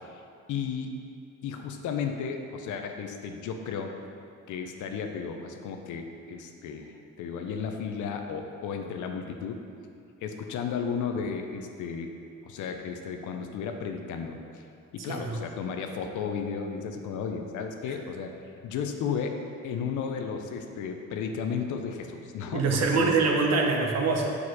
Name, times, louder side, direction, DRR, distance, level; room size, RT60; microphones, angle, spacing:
voice 1, 0.5-0.9 1.4-3.9 4.5-9.6 10.2-12.1 12.4-14.6 14.9-18.3 18.6-19.4 19.6-23.3, left 6 dB, 80° left, 5 dB, 0.6 m, -34 dB
voice 2, 15.1-15.4 22.5-24.4, right 4 dB, 60° right, 1 dB, 0.8 m, -24 dB
4.9 x 4.1 x 4.8 m, 2.4 s
cardioid pair, 90°, 30 cm